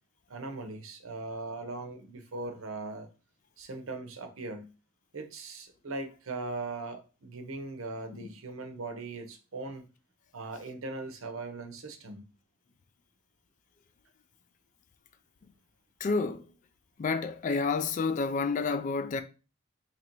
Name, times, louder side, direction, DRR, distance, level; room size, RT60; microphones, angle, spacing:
voice 1, 0.3-3.1 3.6-4.7 5.1-9.8 10.3-12.2, right 3 dB, 75° right, 0.7 m, -39 dB
voice 2, 16.0-16.4 17.0-19.2, left 4 dB, 35° left, 0.3 m, -29 dB
3.0 x 2.6 x 4.4 m
head